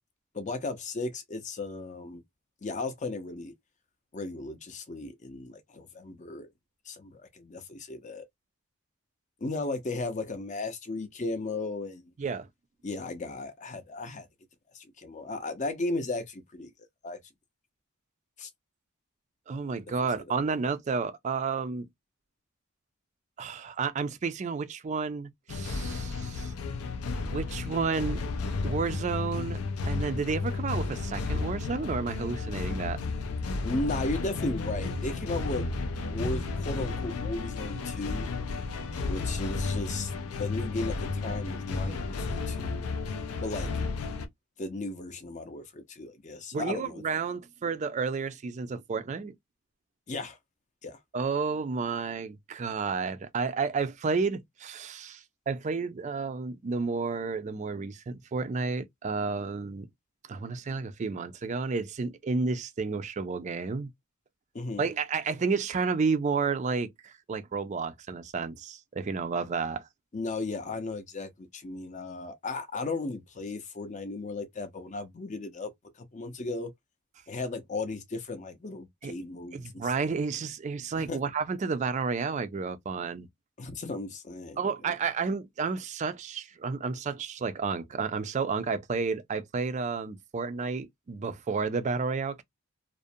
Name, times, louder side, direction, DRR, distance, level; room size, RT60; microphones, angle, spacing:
voice 1, 0.3-2.2 2.6-3.5 4.1-6.5 6.9-8.3 9.4-12.1 12.8-14.3 14.7-16.7 17.0-17.2 18.4-18.5 20.2-20.3 33.6-35.7 36.0-38.3 39.0-42.8 43.4-43.7 44.6-47.0 50.1-50.4 50.8-51.0 64.5-64.8 70.1-75.7 76.0-76.7 77.3-80.1 81.0-81.2 83.6-84.6, left 2 dB, 35° left, 0.5 m, -35 dB
voice 2, 19.5-21.9 23.4-26.5 27.3-28.2 28.6-33.0 46.5-49.4 51.1-59.9 60.3-63.9 64.8-69.9 79.0-79.1 79.5-83.3 84.6-92.4, right 4 dB, 35° right, 0.3 m, -31 dB
sound 1, 25.5-44.3, left 3 dB, 80° left, 0.5 m, -33 dB
2.4 x 2.0 x 2.6 m
head